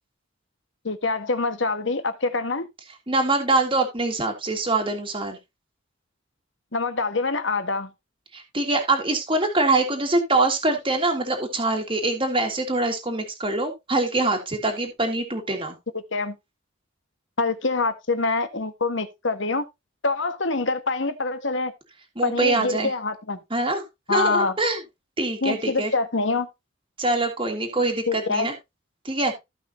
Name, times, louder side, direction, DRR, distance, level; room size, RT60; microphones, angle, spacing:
voice 1, 0.8-2.7 6.7-7.9 16.1-16.4 17.4-19.6 20.0-21.7 22.2-23.4 24.1-24.5 25.4-26.5 28.1-28.5, left 3 dB, 60° left, 1.3 m, -25 dB
voice 2, 3.1-5.4 8.3-15.8 22.2-22.9 23.5-23.8 24.1-24.8 25.2-25.9 27.0-28.5 29.0-29.3, right 2 dB, 25° right, 1.9 m, -24 dB
15.5 x 5.5 x 2.7 m
head